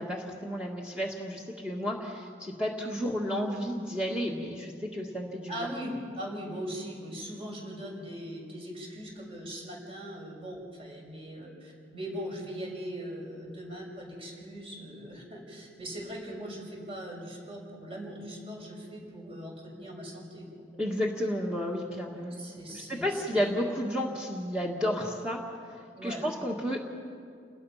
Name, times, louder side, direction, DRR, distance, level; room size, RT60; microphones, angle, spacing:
voice 1, 0.0-5.7 20.8-25.4 26.0-26.8, equal, 5° right, -2 dB, 1.8 m, -32 dB
voice 2, 5.5-20.6 22.0-23.4 25.9-26.2, equal, 35° right, -1 dB, 6.1 m, -40 dB
29.0 x 20.0 x 5.8 m, 2.3 s
head